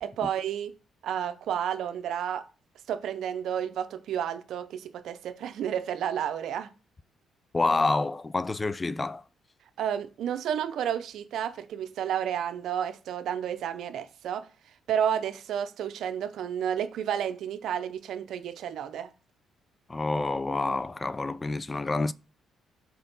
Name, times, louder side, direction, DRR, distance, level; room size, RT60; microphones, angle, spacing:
voice 1, 0.0-0.7 1.0-2.5 2.9-6.7 9.8-14.5 14.9-19.1, right 9 dB, 75° right, 0.6 m, -31 dB
voice 2, 7.5-9.2 19.9-22.1, left 3 dB, 25° left, 0.3 m, -28 dB
5.7 x 4.5 x 4.0 m
cardioid pair, 90°, 0 cm